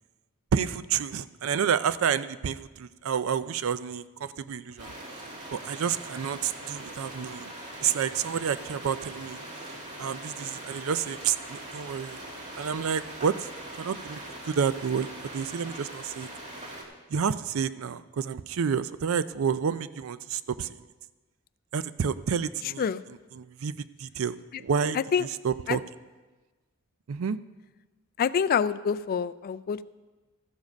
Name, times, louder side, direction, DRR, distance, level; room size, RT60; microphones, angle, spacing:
voice 1, 0.5-4.9 5.5-7.5 7.8-9.4 10.0-12.2 12.6-13.4 13.8-14.2 14.5-15.1 15.3-16.3 17.1-20.7 21.7-22.8 23.3-25.8 27.1-27.4, right 7 dB, 75° right, 15 dB, 0.4 m, -29 dB
sound 1, 4.8-16.8, right 1 dB, 35° right, 1.8 m, -41 dB
voice 2, 24.9-25.3 25.7-25.8 28.2-29.8, left 7 dB, 45° left, 15 dB, 0.3 m, -26 dB
13.5 x 7.3 x 5.2 m, 1.2 s
head